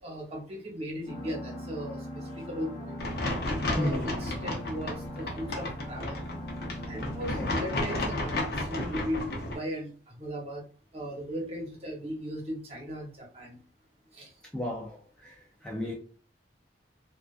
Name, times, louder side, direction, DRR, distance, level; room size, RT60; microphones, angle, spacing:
voice 1, 0.0-3.0 3.7-6.2 6.9-10.6 10.9-13.6 14.1-14.3, equal, 35° right, 0.9 m, -37 dB
sound 1, 1.1-8.4, equal, 40° left, 0.9 m, -40 dB
sound 2, 3.0-9.6, left 2 dB, 60° left, 0.6 m, -33 dB
voice 2, 3.7-4.1 7.4-7.5 14.5-15.0 15.2-15.3 15.6-15.9, left 1 dB, 5° left, 0.4 m, -32 dB
2.4 x 2.2 x 2.4 m
head